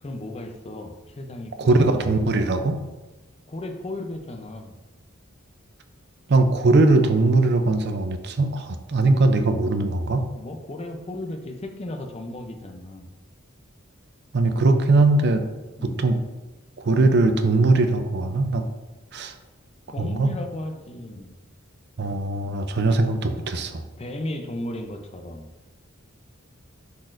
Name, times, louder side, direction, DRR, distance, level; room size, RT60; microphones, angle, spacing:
voice 1, 0.0-1.7 2.0-2.1 3.5-4.7 10.3-13.1 15.7-16.1 19.9-21.3 24.0-25.4, left 1 dB, 30° left, 5 dB, 0.6 m, -35 dB
voice 2, 1.6-2.8 6.3-10.3 14.3-15.4 15.8-16.2 16.8-18.6 19.1-19.3 20.0-20.3 22.0-23.8, right 2 dB, 55° right, 7 dB, 0.5 m, -20 dB
10.5 x 4.1 x 2.6 m, 1.1 s
head